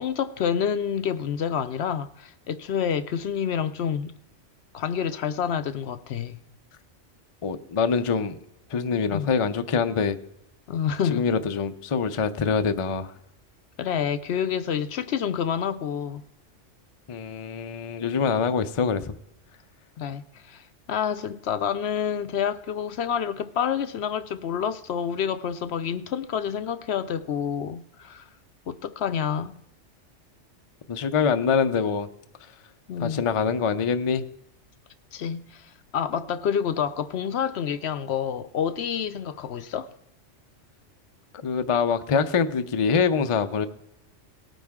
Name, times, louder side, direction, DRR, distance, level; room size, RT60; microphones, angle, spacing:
voice 1, 0.0-4.1 4.7-6.4 9.1-9.3 10.7-11.3 13.8-16.2 20.0-20.6 20.9-28.2 28.7-29.5 32.9-33.2 35.1-35.6 35.9-39.9, left 8 dB, 65° left, 0.8 m, -28 dB
voice 2, 7.4-8.4 8.7-10.2 11.1-13.1 17.1-19.1 30.9-32.1 33.0-34.2 41.4-43.7, left 5 dB, 40° left, 0.5 m, -24 dB
18.5 x 9.2 x 3.6 m
omnidirectional pair, 1.3 m